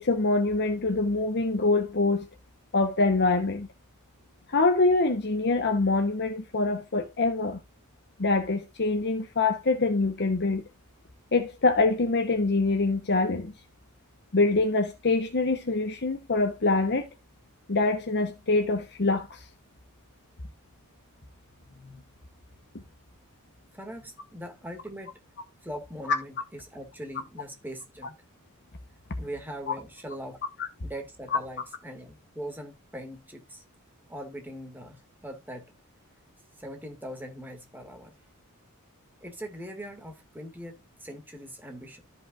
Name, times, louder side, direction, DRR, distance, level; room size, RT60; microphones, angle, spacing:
voice 1, 0.0-2.3 2.7-3.7 4.5-7.6 8.2-10.6 11.3-13.5 14.3-17.1 17.7-19.4 21.8-22.0 29.7-29.8 30.6-30.7, left 3 dB, 50° left, 1.0 m, -25 dB
voice 2, 23.7-25.1 25.6-28.1 29.2-30.4 30.8-33.6 34.1-35.7 36.6-38.1 39.2-42.0, equal, 10° right, 2.1 m, -41 dB
13.5 x 5.4 x 2.5 m
head